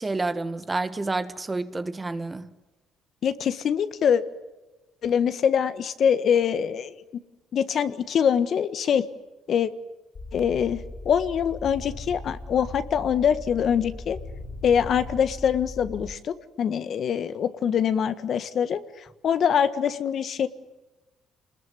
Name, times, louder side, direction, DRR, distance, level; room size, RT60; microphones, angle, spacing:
voice 1, 0.0-2.5, right 3 dB, 20° right, 1.7 m, -29 dB
voice 2, 3.2-4.2 5.0-6.9 7.5-9.0 9.5-9.7 10.3-14.2 14.6-20.5, left 8 dB, 55° left, 1.6 m, -24 dB
sound 1, 10.1-16.1, left 2 dB, 40° left, 4.3 m, -39 dB
27.5 x 21.0 x 9.8 m
cardioid pair, 95°, 0 cm